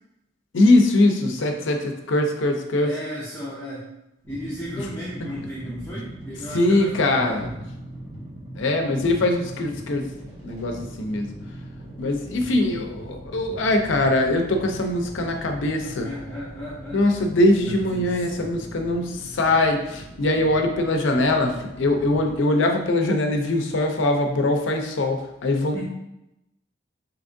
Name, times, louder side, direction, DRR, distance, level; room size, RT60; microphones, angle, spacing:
voice 1, 0.5-2.9 4.8-4.9 6.5-7.4 8.6-10.1 10.4-11.3 12.0-16.1 16.9-25.9, left 2 dB, 75° left, 4 dB, 0.5 m, -22 dB
voice 2, 2.8-3.9 4.3-7.5 15.8-17.0 17.6-18.7 25.7-25.9, equal, 10° left, -10 dB, 0.6 m, -35 dB
sound 1, 4.2-22.4, right 1 dB, 20° right, 1.1 m, -40 dB
3.5 x 2.8 x 2.6 m, 0.88 s
head